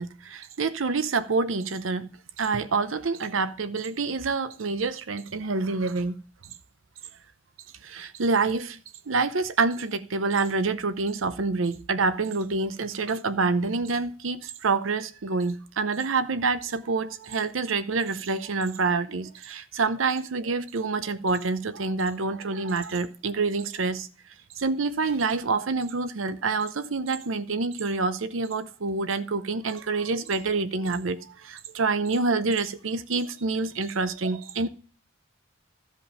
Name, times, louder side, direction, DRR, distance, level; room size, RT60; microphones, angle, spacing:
voice 1, 0.0-2.1 2.4-6.2 7.8-8.8 9.1-24.1 24.6-34.7, right 4 dB, 85° right, 0.7 m, -27 dB
14.0 x 5.3 x 4.9 m
head